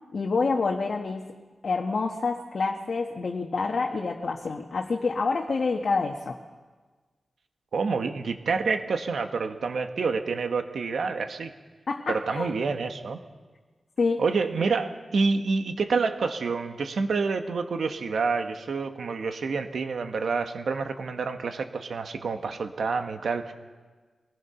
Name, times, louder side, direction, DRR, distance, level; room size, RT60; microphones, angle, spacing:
voice 1, 0.1-1.3 1.6-6.4 11.9-12.5 14.0-14.2, left 4 dB, 60° left, 2 dB, 1.3 m, -27 dB
voice 2, 7.7-11.5 12.1-13.2 14.2-23.5, right 4 dB, 75° right, 6 dB, 1.5 m, -28 dB
23.5 x 19.5 x 5.8 m, 1.4 s
wide cardioid pair, 130°, 0 cm